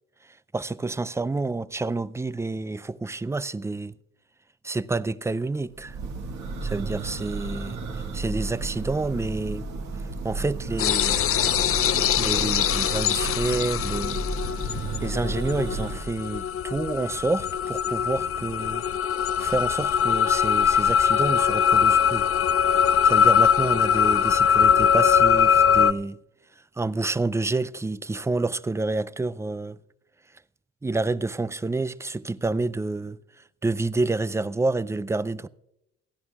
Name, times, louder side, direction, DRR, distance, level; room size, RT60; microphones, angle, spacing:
voice 1, 0.5-3.9 4.6-6.0 6.6-7.8 8.1-9.7 10.2-11.3 12.2-14.3 15.0-18.8 19.4-22.3 22.7-26.2 26.8-29.8 30.8-33.2 33.6-35.5, right 3 dB, 10° right, 0.4 m, -28 dB
Church bell, 5.7-16.0, right 3 dB, 70° right, 2.0 m, -33 dB
sound 1, 10.8-25.9, left 8 dB, 50° left, 0.5 m, -22 dB
29.0 x 11.0 x 2.4 m
cardioid pair, 90°, 30 cm